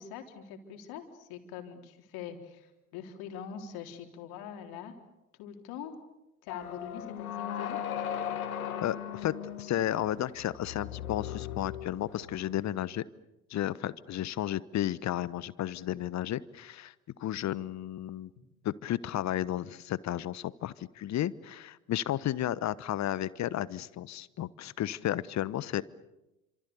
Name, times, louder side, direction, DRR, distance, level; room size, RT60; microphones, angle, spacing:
voice 1, 0.0-4.9 5.4-6.0 6.4-7.8, left 8 dB, 60° left, 5 dB, 3.8 m, -43 dB
sound 1, 6.5-12.5, left 9 dB, 75° left, 2.2 m, -38 dB
voice 2, 8.8-13.0 13.5-16.9 17.2-18.3 18.6-25.8, left 12 dB, 40° left, 19 dB, 1.1 m, -33 dB
28.0 x 26.5 x 7.0 m, 0.95 s
figure-of-eight pair, 60°, 42 cm